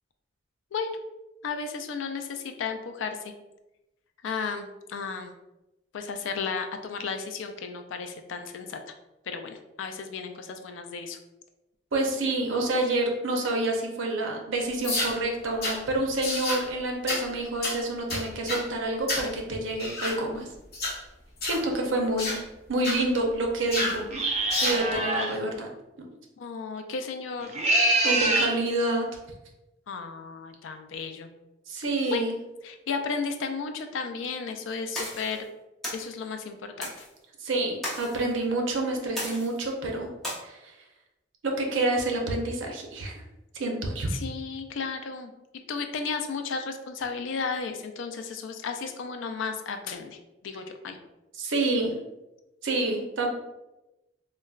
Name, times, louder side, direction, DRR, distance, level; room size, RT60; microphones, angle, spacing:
voice 1, 1.4-3.3 4.2-5.3 5.9-8.8 9.3-11.2 26.4-27.5 29.9-31.3 32.1-32.3 32.6-35.5 35.9-37.1 44.1-45.3 45.7-50.2 50.4-51.0, left 5 dB, 80° left, 7 dB, 0.4 m, -34 dB
voice 2, 11.9-20.5 21.4-22.4 22.7-24.1 24.6-25.7 26.0-26.1 28.0-29.1 31.7-32.3 37.4-40.1 40.4-40.6 41.4-43.1 43.5-44.1 51.4-51.9 52.6-53.3, right 2 dB, 85° right, 1 dB, 0.6 m, -28 dB
sound 1, 14.8-15.1 15.6-15.8 16.2-16.6 17.1-17.2 17.6-17.8 18.1-18.6 19.1-19.3 19.8-20.2 20.7-21.0 21.4-21.6 22.2-22.4 22.8-23.0 23.7-24.0 24.5-24.8, left 2 dB, 50° left, 0.9 m, -29 dB
sound 2, 24.1-25.4 27.4-28.6, right 2 dB, 35° right, 0.4 m, -25 dB
sound 3, 34.9-35.4 35.8-36.1 36.8-37.1 37.8-38.2 39.2-39.6 40.2-40.3, equal, ahead, 0.8 m, -34 dB
3.8 x 2.2 x 2.3 m, 0.99 s
head